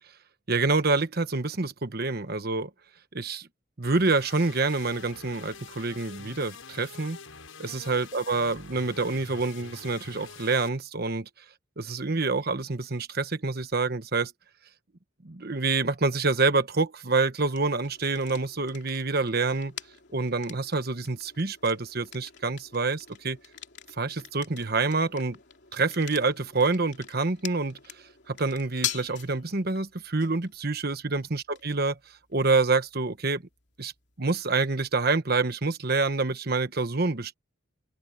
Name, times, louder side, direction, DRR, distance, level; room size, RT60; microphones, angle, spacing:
voice 1, 0.5-2.7 3.1-3.5 3.8-7.2 7.6-11.3 11.8-14.3 15.2-19.7 20.1-23.4 24.0-25.4 25.7-27.8 28.3-32.0 32.3-33.4 33.8-33.9 34.2-37.3, right 3 dB, 50° right, 1.2 m, -27 dB
sound 1, 3.8-10.7, left 5 dB, 80° left, 7.5 m, -46 dB
sound 2, 17.5-35.2, left 10 dB, 55° left, 3.1 m, -44 dB
open air
head